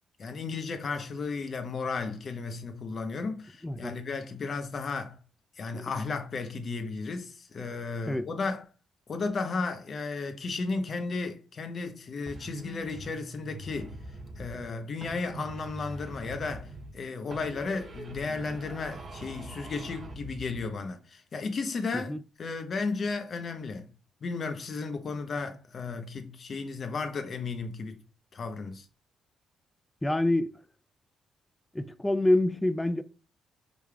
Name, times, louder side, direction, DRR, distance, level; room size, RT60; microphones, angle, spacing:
voice 1, 0.2-5.2 5.6-8.6 9.1-14.0 14.4-23.9 24.2-28.0 28.3-28.8, left 4 dB, 45° left, 0.8 m, -34 dB
voice 2, 3.6-3.9 5.7-5.8 8.1-8.3 21.9-22.2 30.0-30.5 31.7-33.0, left 1 dB, 10° left, 0.4 m, -26 dB
sound 1, 12.3-14.7 15.0-17.0 17.3-20.7, right 2 dB, 40° right, 0.6 m, -43 dB
5.2 x 3.2 x 2.4 m
cardioid pair, 90°, 0 cm